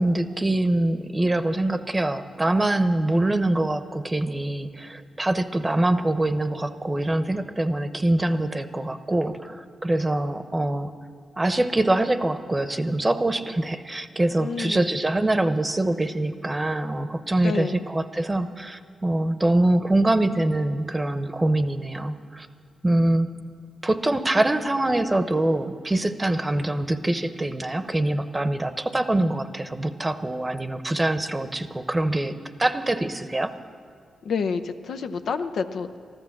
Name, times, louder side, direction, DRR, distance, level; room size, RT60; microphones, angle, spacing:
voice 1, 0.0-10.9 11.4-22.5 22.8-23.3 23.8-32.3 32.6-33.5, right 1 dB, 25° right, 11 dB, 0.9 m, -24 dB
voice 2, 14.4-14.9 17.4-17.9 34.2-36.0, left 5 dB, 75° left, 8 dB, 0.6 m, -29 dB
14.0 x 12.0 x 7.4 m, 2.2 s
cardioid pair, 55°, 0 cm